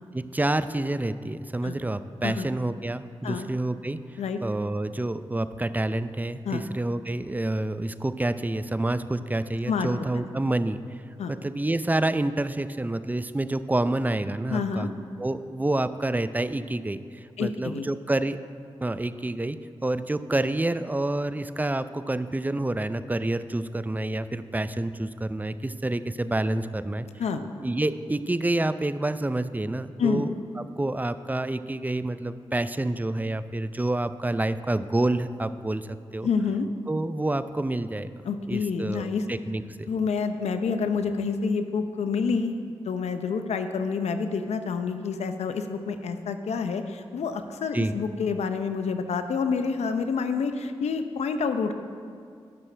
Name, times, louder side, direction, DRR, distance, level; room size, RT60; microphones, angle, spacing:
voice 1, 0.1-4.0 4.4-10.8 11.3-14.9 15.2-18.4 18.8-19.6 19.8-27.1 27.6-36.3 36.9-38.1 38.5-39.9 47.7-48.0, right 2 dB, 15° right, 12 dB, 0.5 m, -28 dB
voice 2, 14.5-14.9 17.4-17.9 27.2-27.4 30.0-30.3 36.2-36.7 38.2-39.3 39.9-51.7, left 5 dB, 80° left, 8 dB, 0.7 m, -28 dB
18.0 x 6.1 x 3.3 m, 2.3 s
supercardioid pair, 40°, 11 cm